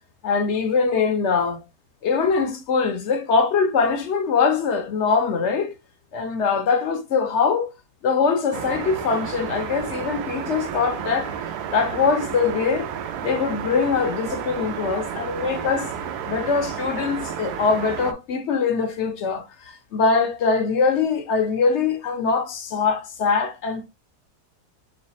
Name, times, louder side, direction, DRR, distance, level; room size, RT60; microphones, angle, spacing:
voice 1, 0.2-1.6 2.0-5.7 6.1-7.7 8.0-11.3 11.7-12.9 13.2-15.9 16.3-23.9, left 5 dB, 60° left, 0.8 m, -22 dB
sound 1, 8.5-18.1, right 8 dB, 80° right, 1.2 m, -31 dB
3.2 x 3.2 x 4.0 m
omnidirectional pair, 1.7 m